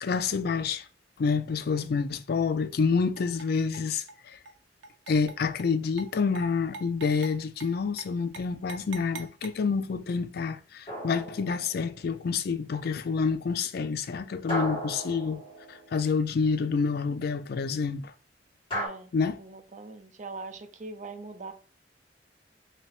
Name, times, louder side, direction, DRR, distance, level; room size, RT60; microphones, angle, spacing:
voice 1, 0.0-0.8 1.2-4.4 5.1-15.4 15.7-18.1 19.1-19.4, left 5 dB, 60° left, 0.4 m, -28 dB
sound 1, 3.2-3.5 3.7-4.2 4.5-4.6 4.8-5.7 6.0-6.1 6.3-6.5 6.7-7.3 7.6-7.7 8.0-8.1 8.3-9.5, right 4 dB, 85° right, 0.6 m, -43 dB
sound 2, 10.9-12.1 14.5-16.2 18.7-18.9, equal, 30° left, 1.9 m, -35 dB
voice 2, 18.7-19.1 19.4-21.5, right 3 dB, 45° right, 0.5 m, -41 dB
3.3 x 2.9 x 3.1 m
head